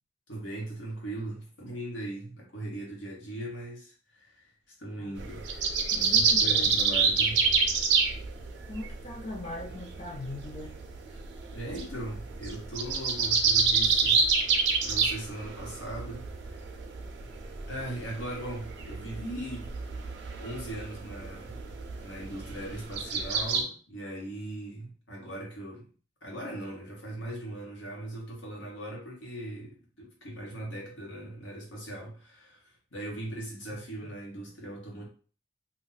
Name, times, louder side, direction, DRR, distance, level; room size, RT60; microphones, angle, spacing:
voice 1, 0.3-4.4 4.8-5.5 5.9-7.4 11.1-11.2 11.5-14.2 14.8-16.6 17.7-19.7 20.3-21.6 22.0-25.9 26.2-35.1, right 1 dB, 85° left, -2 dB, 1.2 m, -39 dB
sound 1, 5.2-23.6, right 5 dB, 75° right, 0.6 m, -28 dB
voice 2, 5.9-6.7 8.7-10.7 34.0-34.1, left 1 dB, 35° left, -3 dB, 0.6 m, -40 dB
2.5 x 2.2 x 4.0 m, 0.37 s
head